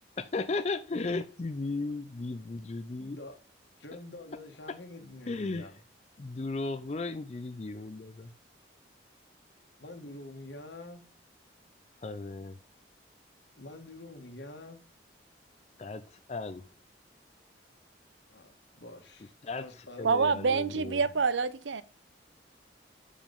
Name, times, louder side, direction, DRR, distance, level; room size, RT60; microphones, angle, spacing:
voice 1, 0.2-3.2 4.7-4.8 5.3-5.7 6.2-8.3 12.0-12.6 15.8-16.7 19.4-21.0, left 3 dB, 35° left, 0.4 m, -35 dB
voice 2, 3.0-3.4 3.8-5.7 9.8-11.0 13.6-14.8 18.3-19.3 19.6-20.3, left 2 dB, 75° left, 1.5 m, -46 dB
voice 3, 20.0-21.8, right 4 dB, 85° right, 0.6 m, -27 dB
7.2 x 5.1 x 5.3 m
head